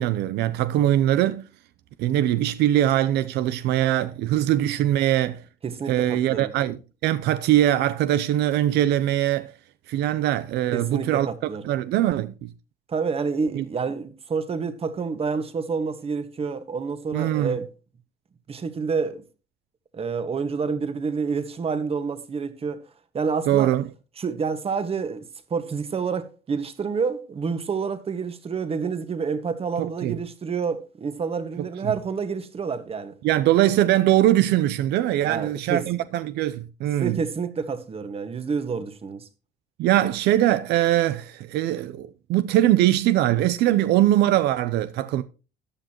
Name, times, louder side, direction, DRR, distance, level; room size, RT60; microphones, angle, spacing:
voice 1, 0.0-1.4 2.0-5.4 5.9-9.5 9.9-11.3 11.6-12.5 13.5-13.6 17.1-17.6 23.5-23.8 29.8-30.2 31.6-31.9 33.2-37.2 39.8-45.2, right 13 dB, 80° right, 0.6 m, -22 dB
voice 2, 5.6-6.5 10.7-11.7 12.9-17.7 18.5-19.2 19.9-22.8 23.1-23.7 24.2-25.2 25.5-33.1 35.2-35.8 37.0-39.3, right 5 dB, 35° right, 1.6 m, -28 dB
14.0 x 9.3 x 3.0 m
cardioid pair, 110°, 17 cm